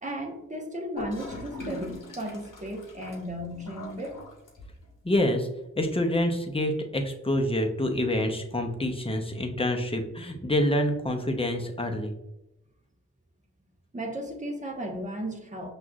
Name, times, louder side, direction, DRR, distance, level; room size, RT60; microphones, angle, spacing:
voice 1, 0.0-4.1 13.9-15.7, equal, 25° right, 1 dB, 1.0 m, -35 dB
Gurgling / Toilet flush, 1.0-4.9, left 1 dB, 75° left, 1.1 m, -41 dB
voice 2, 5.0-5.5 5.8-12.1, left 1 dB, 15° left, 4 dB, 0.7 m, -27 dB
6.0 x 2.5 x 2.3 m, 0.92 s
cardioid pair, 45°, 32 cm